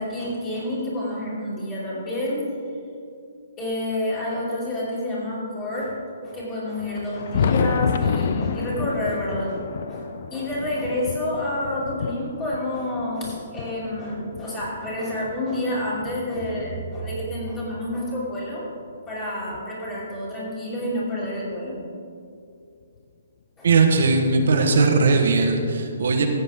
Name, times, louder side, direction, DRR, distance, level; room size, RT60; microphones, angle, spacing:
voice 1, 0.0-2.4 3.6-6.0 6.2-18.6 19.1-21.8 23.6-23.7 24.5-24.7, left 1 dB, 15° left, -7 dB, 3.0 m, -29 dB
Thunder, 6.8-15.4 16.0-17.7 18.9-19.0 19.5-19.6 21.5-21.6 23.0-23.1 24.6-24.7, left 6 dB, 50° left, 0.5 m, -29 dB
voice 2, 23.6-26.3, right 4 dB, 65° right, 2 dB, 1.2 m, -19 dB
14.5 x 8.4 x 3.6 m, 2.5 s
hypercardioid pair, 170°, 0 cm